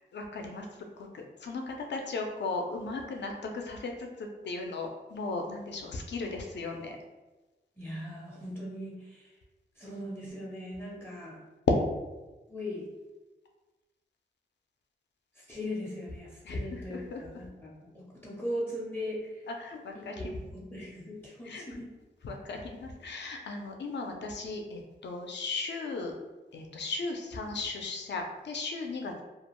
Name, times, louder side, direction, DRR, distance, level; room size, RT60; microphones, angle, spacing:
voice 1, 0.1-7.0 11.7-11.8 16.4-17.5 19.5-20.3 21.4-21.6 22.2-26.1 26.5-29.2, left 3 dB, 75° left, 3 dB, 0.4 m, -36 dB
voice 2, 7.8-9.3 9.8-11.4 12.5-12.9 15.4-19.5 19.9-21.9, left 1 dB, 10° left, -4 dB, 0.4 m, -39 dB
2.3 x 2.1 x 2.9 m, 1.2 s
wide cardioid pair, 115°, 18 cm